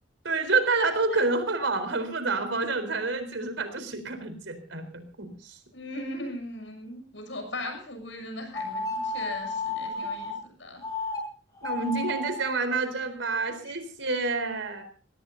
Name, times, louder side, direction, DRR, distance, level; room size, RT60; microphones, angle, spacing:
voice 1, 0.2-5.5 10.0-10.1 11.6-14.8, right 3 dB, 80° right, 9 dB, 4.1 m, -28 dB
voice 2, 5.7-10.8, left 1 dB, 80° left, 5 dB, 7.0 m, -38 dB
sound 1, 8.5-10.4 10.8-11.2 11.6-12.4, left 2 dB, 20° left, 5.2 m, -32 dB
23.5 x 18.0 x 2.7 m, 0.37 s
head